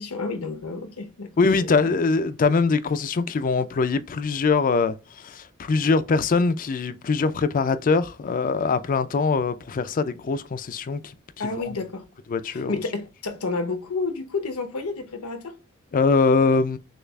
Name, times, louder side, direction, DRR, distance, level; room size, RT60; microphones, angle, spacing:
voice 1, 0.0-1.3 1.6-2.0 11.4-12.0 12.5-15.5, left 3 dB, 85° left, 0.9 m, -30 dB
voice 2, 1.4-11.0 12.3-12.7 15.9-16.8, left 4 dB, 40° left, 0.4 m, -22 dB
6.4 x 2.4 x 2.3 m
head